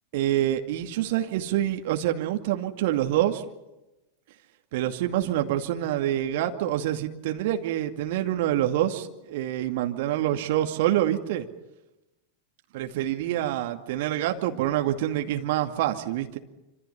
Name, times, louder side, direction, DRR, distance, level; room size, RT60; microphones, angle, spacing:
voice 1, 0.1-3.4 4.7-11.5 12.7-16.4, right 12 dB, 50° right, 6 dB, 2.3 m, -26 dB
26.5 x 26.5 x 5.6 m, 0.98 s
figure-of-eight pair, 90°, 0 cm